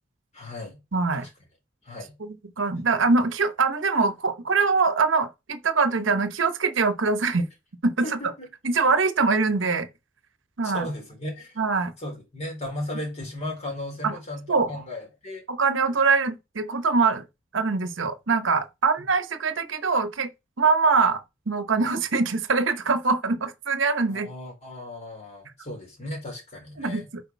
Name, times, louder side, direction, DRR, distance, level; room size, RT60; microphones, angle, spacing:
voice 1, 0.3-0.8 1.2-1.3 1.8-2.1 8.0-8.5 10.6-11.6 12.0-15.4 24.1-27.1, left 1 dB, 35° left, 4.1 m, -36 dB
voice 2, 0.9-1.3 2.2-7.5 7.8-8.2 8.6-9.9 10.6-10.9 11.6-11.9 14.0-14.1 14.5-14.8 15.5-17.2 17.5-20.3 20.6-21.2 21.5-24.3 26.8-27.2, right 4 dB, 75° right, 0.9 m, -23 dB
8.2 x 5.0 x 4.6 m
head